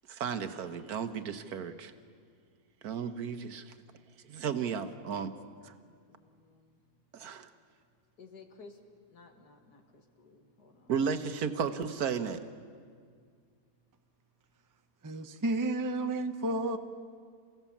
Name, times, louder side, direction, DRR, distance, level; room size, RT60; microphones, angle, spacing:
voice 1, 0.1-1.9 2.8-3.7 4.2-5.3 5.6-5.7 7.1-7.5 10.9-12.4, right 6 dB, 70° right, 9 dB, 1.5 m, -34 dB
voice 2, 5.6-6.8 8.2-10.9, left 4 dB, 80° left, 4 dB, 2.3 m, -56 dB
voice 3, 15.0-16.8, right 2 dB, 20° right, 7 dB, 0.5 m, -31 dB
29.0 x 16.0 x 7.2 m, 2.1 s
omnidirectional pair, 1.7 m